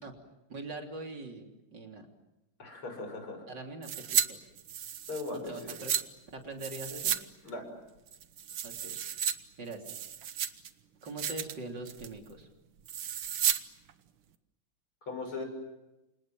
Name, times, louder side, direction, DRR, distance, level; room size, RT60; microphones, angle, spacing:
voice 1, 0.5-2.1 3.5-4.5 5.5-5.9 6.3-7.1 8.6-9.0 9.6-9.9 11.0-12.5, right 2 dB, 55° right, 3 dB, 3.9 m, -42 dB
voice 2, 2.6-3.4 5.1-5.8 7.4-7.7 15.0-15.4, left 3 dB, 90° left, 5 dB, 7.3 m, -38 dB
sound 1, 3.8-4.3 4.6-6.0 6.6-7.2 7.5-7.6 8.1-9.3 9.7-10.7 11.1-11.5 11.9-12.2 12.9-13.6 13.9-14.0, right 9 dB, 75° right, 2.0 m, -32 dB
30.0 x 26.0 x 7.6 m, 0.98 s
omnidirectional pair, 2.3 m